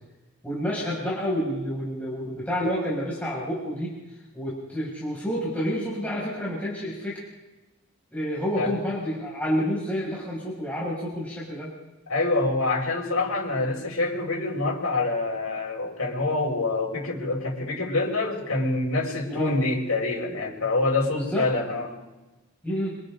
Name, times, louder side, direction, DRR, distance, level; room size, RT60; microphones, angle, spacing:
voice 1, 0.4-3.9 4.3-7.2 8.1-11.7 19.3-19.5 21.1-21.5 22.6-23.0, equal, 5° left, -7 dB, 7.0 m, -29 dB
voice 2, 12.1-22.0, left 2 dB, 75° left, -1 dB, 6.4 m, -26 dB
29.0 x 26.5 x 4.0 m, 1.1 s
head